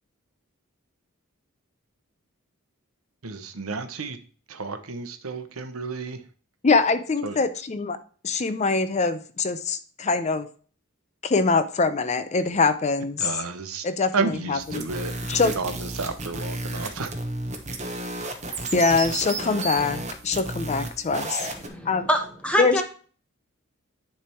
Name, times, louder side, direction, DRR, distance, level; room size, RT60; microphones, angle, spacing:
voice 1, 3.2-4.2 4.5-6.2 7.2-7.4 13.2-13.9 14.1-17.1, right 4 dB, 80° right, 0.9 m, -31 dB
voice 2, 6.6-8.0 8.2-10.5 11.2-13.3 13.8-14.8 15.3-15.5 18.7-21.5 21.9-22.1 22.6-22.8, left 4 dB, 30° left, 0.5 m, -23 dB
sound 1, 14.6-21.7, right 2 dB, 35° right, 1.1 m, -33 dB
voice 3, 21.4-22.8, equal, 5° left, 1.0 m, -26 dB
10.0 x 3.4 x 4.4 m
head